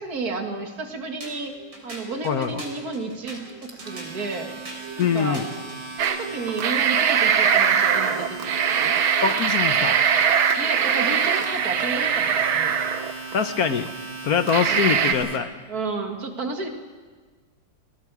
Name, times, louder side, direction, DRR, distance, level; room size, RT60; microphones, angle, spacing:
voice 1, 0.0-1.5 1.8-4.5 5.0-5.4 5.9-8.9 10.6-12.7 14.7-14.8 15.7-16.7, right 3 dB, 50° right, 4 dB, 2.4 m, -32 dB
sound 1, 1.2-6.4, right 3 dB, 65° right, 4.8 m, -40 dB
voice 2, 2.2-2.6 5.0-5.5 9.2-10.0 13.3-15.5, left 7 dB, 60° left, 9 dB, 1.1 m, -24 dB
Domestic sounds home sounds, 3.5-15.4, right 4 dB, 35° right, 2.2 m, -37 dB
sound 2, 6.0-6.2 6.5-13.3 13.9-14.0 14.5-15.1, right 7 dB, 85° right, 1.9 m, -21 dB
27.0 x 20.0 x 4.8 m, 1.4 s
omnidirectional pair, 2.2 m